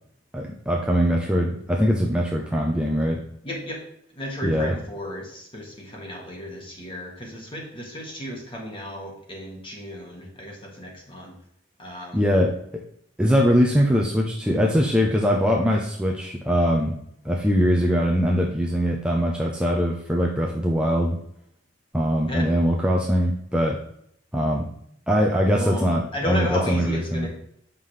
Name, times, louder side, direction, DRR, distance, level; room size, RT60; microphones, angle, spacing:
voice 1, 0.3-3.2 4.4-4.7 12.1-12.5 13.2-17.0 17.2-21.2 21.9-23.8 24.3-24.7 25.1-27.3, equal, 5° right, -1 dB, 0.6 m, -22 dB
voice 2, 3.4-3.8 4.1-11.3 11.8-12.2 22.3-22.4 25.5-27.3, equal, 25° left, -1 dB, 1.9 m, -34 dB
7.4 x 5.6 x 3.3 m, 0.71 s
head